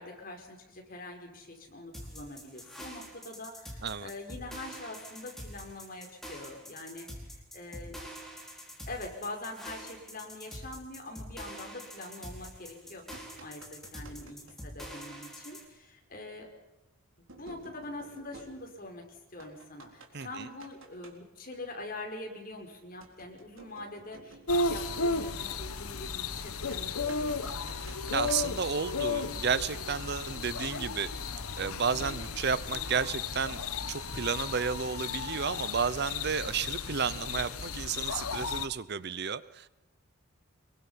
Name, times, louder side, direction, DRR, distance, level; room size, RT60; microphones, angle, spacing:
voice 1, 0.0-8.0 8.9-16.5 17.4-27.5, left 2 dB, 40° left, 2 dB, 5.1 m, -44 dB
sound 1, 1.9-15.6, equal, ahead, 4.6 m, -45 dB
sound 2, 12.8-14.6 16.0-16.1 17.3-19.0 19.4-21.1 23.0-24.7 26.7-28.8 29.2-30.0, right 2 dB, 65° right, 4.0 m, -53 dB
voice 2, 20.1-20.5 27.8-31.1 31.6-33.6 33.9-39.7, right 6 dB, 50° right, 16 dB, 0.7 m, -32 dB
sound 3, 24.5-38.7, left 4 dB, 80° left, 1.3 m, -34 dB
25.5 x 22.5 x 5.8 m, 1.0 s
head